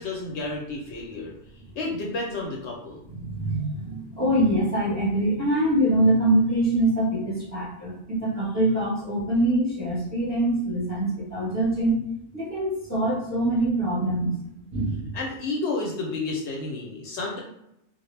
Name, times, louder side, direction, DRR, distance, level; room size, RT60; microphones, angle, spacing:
voice 1, 0.0-1.3 1.8-3.0 15.1-17.4, left 3 dB, 70° left, -1 dB, 0.8 m, -31 dB
voice 2, 3.1-12.0 12.3-14.4 14.7-15.2, right 1 dB, 15° right, -7 dB, 0.7 m, -24 dB
2.0 x 2.0 x 3.1 m, 0.81 s
omnidirectional pair, 1.3 m